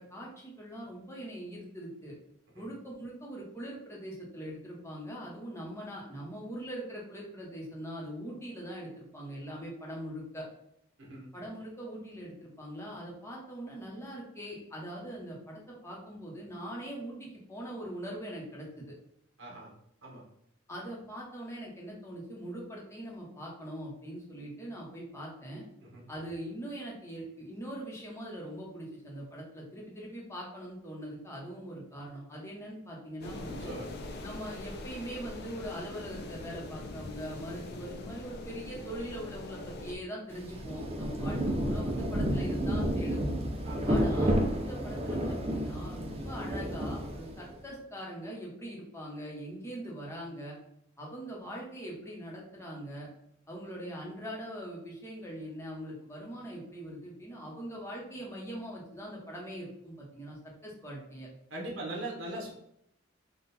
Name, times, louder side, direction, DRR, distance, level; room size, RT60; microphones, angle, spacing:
voice 1, 0.0-2.1 2.5-10.5 11.3-18.8 20.7-25.6 26.1-33.8 34.2-43.3 43.9-50.5 51.0-53.1 53.5-61.3, equal, 15° left, -3 dB, 1.0 m, -42 dB
voice 2, 19.4-19.7 20.0-20.2 25.8-26.0 33.4-33.9 43.6-43.9 61.5-62.5, right 1 dB, 70° right, -1 dB, 1.1 m, -40 dB
sound 1, 33.2-39.9, left 2 dB, 55° left, 0.5 m, -42 dB
Rain, 40.3-47.5, equal, 30° right, 0.6 m, -31 dB
3.8 x 2.4 x 4.1 m, 0.76 s
head